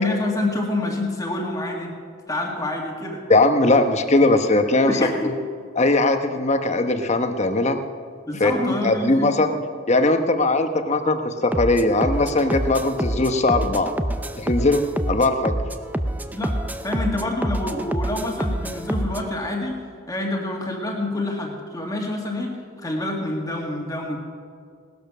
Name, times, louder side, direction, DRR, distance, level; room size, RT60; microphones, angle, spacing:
voice 1, 0.0-1.9 2.3-3.2 4.9-5.3 8.3-9.3 16.3-16.6 16.8-24.2, left 2 dB, 15° left, 0 dB, 2.0 m, -27 dB
voice 2, 3.3-4.9 5.2-5.3 5.8-7.8 8.4-9.5 9.9-13.9 14.4-15.6, left 2 dB, 35° left, 7 dB, 1.0 m, -20 dB
sound 1, 11.5-19.3, right 1 dB, 10° right, 0.6 m, -27 dB
18.0 x 12.5 x 6.2 m, 2.2 s
head